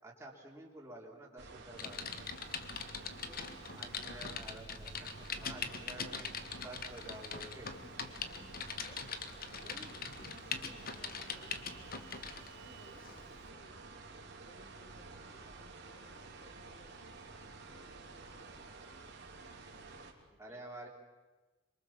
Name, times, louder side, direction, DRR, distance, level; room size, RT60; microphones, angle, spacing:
voice 1, 0.0-2.3 3.8-6.3 6.6-7.7 15.4-15.5 18.4-18.6 20.4-20.9, right 1 dB, 15° right, -3 dB, 3.4 m, -50 dB
sound 1, 1.4-20.1, right 3 dB, 60° right, 3.4 m, -51 dB
Typing, 1.8-12.5 13.0-13.2, left 6 dB, 50° left, 1.6 m, -42 dB
voice 2, 2.6-4.7 5.3-6.3 7.8-8.4 8.8-13.9 14.4-17.1 17.5-18.8 20.3-20.6, equal, 30° left, 3 dB, 4.4 m, -61 dB
26.5 x 23.5 x 7.3 m, 1.2 s
head